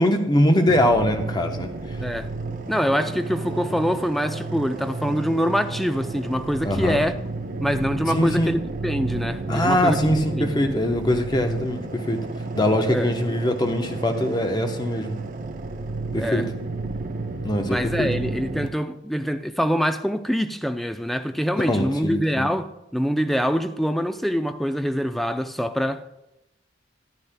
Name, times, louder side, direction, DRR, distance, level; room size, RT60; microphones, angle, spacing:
voice 1, 0.0-1.7 6.6-7.0 8.1-8.5 9.5-12.3 12.5-15.2 16.1-16.5 17.4-18.3 21.5-22.5, left 1 dB, 25° left, 0.8 m, -22 dB
sound 1, 0.7-18.7, right 3 dB, 45° right, 0.6 m, -32 dB
voice 2, 2.7-7.1 7.6-10.5 12.9-13.1 16.2-16.5 17.7-26.2, equal, ahead, 0.4 m, -25 dB
13.5 x 10.5 x 2.2 m
head